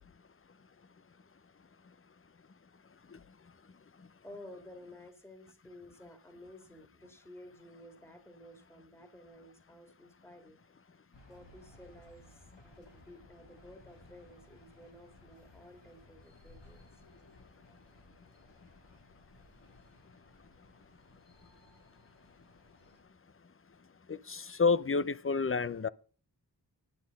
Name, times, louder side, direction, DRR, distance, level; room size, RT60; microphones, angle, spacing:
voice 1, 3.1-3.5 4.0-4.1 24.1-25.9, left 4 dB, 30° left, 0.5 m, -30 dB
voice 2, 4.2-10.6 11.2-17.0, left 1 dB, 5° left, 1.9 m, -53 dB
sound 1, 11.1-23.0, left 2 dB, 90° left, 2.8 m, -60 dB
10.5 x 9.4 x 5.2 m
wide cardioid pair, 60°, 42 cm